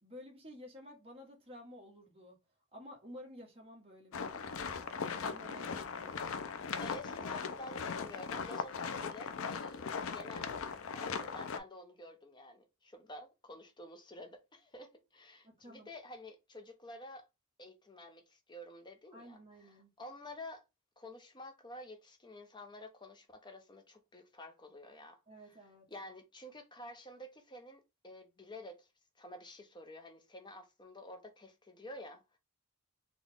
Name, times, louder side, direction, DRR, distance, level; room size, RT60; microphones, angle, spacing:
voice 1, 0.0-2.4 2.7-6.2 15.4-15.9 19.1-19.9 25.3-25.9, equal, 25° right, 1.4 m, -53 dB
sound 1, 4.1-11.6, left 5 dB, 60° left, 0.5 m, -39 dB
voice 2, 6.8-17.2 17.6-20.6 21.0-28.9 29.2-32.4, left 1 dB, 20° left, 0.7 m, -50 dB
4.0 x 2.4 x 3.5 m
head